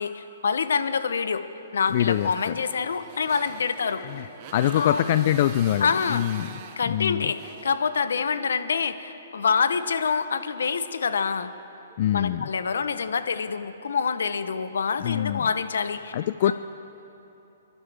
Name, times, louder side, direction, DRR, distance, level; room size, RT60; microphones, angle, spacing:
voice 1, 0.0-1.4 1.7-4.0 4.8-5.0 5.8-6.5 6.8-11.5 12.1-16.1 16.5-16.6, left 5 dB, 80° left, 11 dB, 0.8 m, -26 dB
Motorcycle, 1.8-8.5, right 7 dB, 35° right, 0.8 m, -45 dB
voice 2, 1.9-2.6 4.0-4.3 4.5-6.5 6.9-7.3 12.0-12.5 15.0-15.5 16.1-16.5, left 11 dB, 45° left, 11 dB, 0.3 m, -24 dB
sound 1, 2.6-3.4 3.7-4.4 4.8-5.6 5.9-6.7 7.0-7.8 8.1-8.9 9.4-10.1 10.6-11.3 11.9-12.7, right 2 dB, 10° right, 1.1 m, -51 dB
29.0 x 11.0 x 3.4 m, 3.0 s
hypercardioid pair, 160°, 0 cm